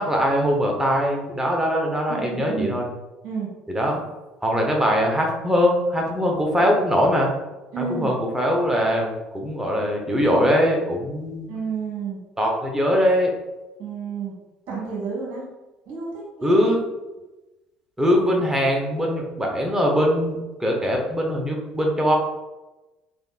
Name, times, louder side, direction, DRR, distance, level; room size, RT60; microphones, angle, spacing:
voice 1, 0.0-2.8 3.7-4.0 4.4-7.3 7.8-11.5 12.4-13.3 16.4-16.8 18.0-22.2, equal, 10° right, 0 dB, 0.9 m, -21 dB
voice 2, 2.1-2.7 3.2-3.5 7.7-8.1 11.5-12.2 13.8-14.3 14.7-15.5 15.9-16.6, right 5 dB, 50° right, -4 dB, 1.4 m, -30 dB
3.8 x 3.4 x 2.4 m, 1.1 s
figure-of-eight pair, 55°, 4 cm